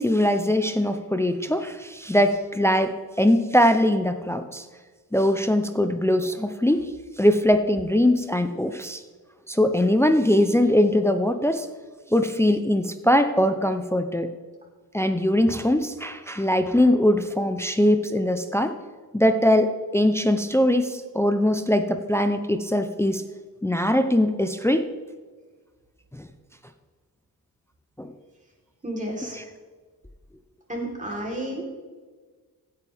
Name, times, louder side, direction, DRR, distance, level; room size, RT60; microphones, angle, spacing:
voice 1, 0.0-4.7 5.1-6.9 7.2-9.0 9.5-11.7 12.1-14.3 14.9-18.8 19.1-23.2 23.6-24.9 26.1-26.3 28.0-28.1 29.2-29.4, left 1 dB, 5° left, 8 dB, 0.6 m, -21 dB
voice 2, 28.8-29.4 30.7-31.7, right 1 dB, 20° right, -2 dB, 3.7 m, -31 dB
16.5 x 9.4 x 3.5 m, 1.4 s
cardioid pair, 95°, 39 cm